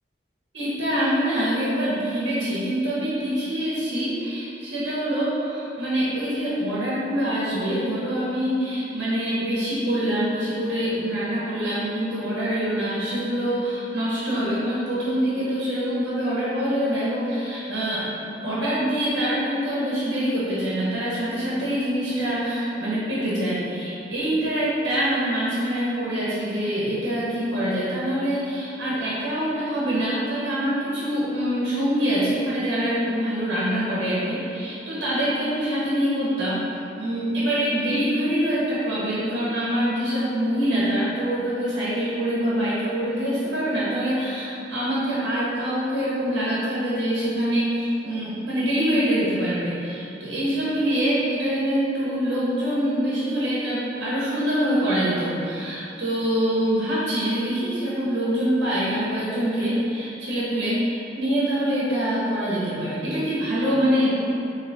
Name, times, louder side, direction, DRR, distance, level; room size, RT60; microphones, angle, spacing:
voice 1, 0.5-36.6 37.0-64.1, equal, 70° right, -9 dB, 1.0 m, -25 dB
3.9 x 3.0 x 3.5 m, 2.7 s
head